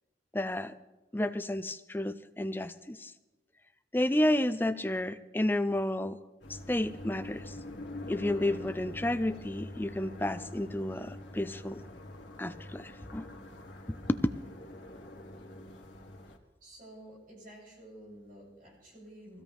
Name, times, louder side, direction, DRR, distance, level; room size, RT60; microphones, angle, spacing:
voice 1, 0.3-0.7 1.1-3.1 3.9-6.2 6.5-7.6 8.1-11.8 12.4-13.3 13.9-14.2, left 1 dB, 10° left, 12 dB, 0.4 m, -31 dB
sound 1, 6.4-16.4, left 1 dB, 90° left, 1.9 m, -45 dB
voice 2, 16.6-19.4, right 1 dB, 50° right, -4 dB, 7.8 m, -51 dB
23.0 x 16.5 x 3.6 m, 1.1 s
head